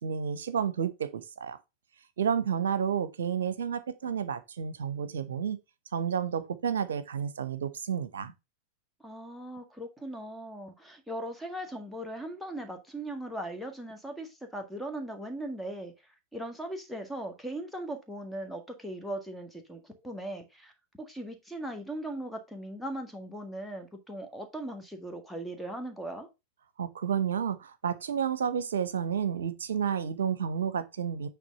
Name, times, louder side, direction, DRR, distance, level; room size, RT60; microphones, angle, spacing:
voice 1, 0.0-1.6 2.2-5.6 5.9-8.3 26.8-31.3, right 7 dB, 65° right, 0.8 m, -31 dB
voice 2, 9.0-15.9 16.3-20.7 21.0-26.3, right 1 dB, ahead, 1.7 m, -39 dB
9.0 x 3.5 x 5.3 m
figure-of-eight pair, 90°, 0 cm